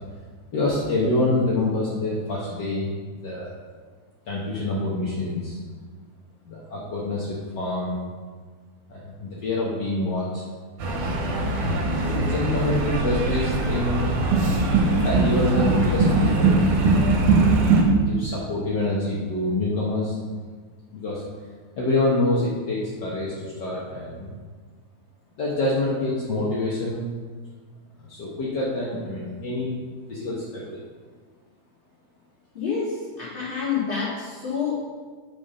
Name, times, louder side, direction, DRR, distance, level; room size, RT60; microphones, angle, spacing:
voice 1, 0.5-2.9 3.2-3.5 4.3-5.6 6.5-8.0 8.9-10.3 12.0-14.1 15.0-16.6 18.1-20.2 20.9-21.2 21.8-24.3 25.4-27.0 28.0-29.7 30.1-30.8, left 2 dB, 55° left, -6 dB, 1.3 m, -26 dB
sound 1, 10.8-17.8, right 3 dB, 75° right, 2.8 m, -21 dB
voice 2, 32.5-34.8, left 6 dB, 20° left, -8 dB, 2.6 m, -28 dB
8.4 x 5.6 x 5.5 m, 1.5 s
omnidirectional pair, 3.4 m